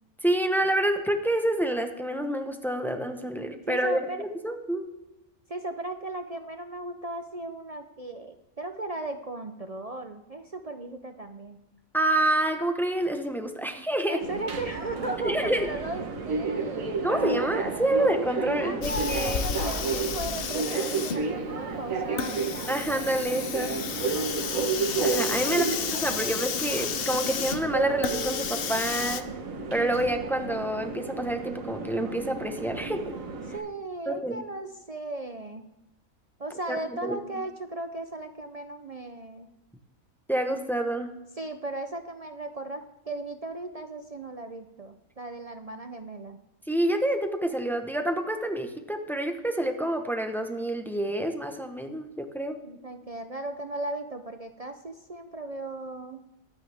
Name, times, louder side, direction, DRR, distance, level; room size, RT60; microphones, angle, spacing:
voice 1, 0.2-4.9 11.9-14.2 15.2-15.7 17.0-19.6 22.7-23.8 25.0-29.3 29.7-33.1 34.1-34.4 36.7-37.2 40.3-41.1 46.7-52.6, right 1 dB, ahead, 6 dB, 0.8 m, -28 dB
voice 2, 3.7-4.2 5.5-11.6 14.1-16.9 18.6-22.5 25.5-26.3 33.5-35.6 36.4-39.5 41.4-46.4 52.6-56.2, right 2 dB, 45° right, 7 dB, 0.4 m, -37 dB
Subway metro underground, 14.2-33.6, right 4 dB, 65° right, 1.6 m, -32 dB
Hiss, 18.8-29.2, left 8 dB, 55° left, 0.7 m, -32 dB
22.0 x 9.1 x 3.5 m, 0.96 s
omnidirectional pair, 1.5 m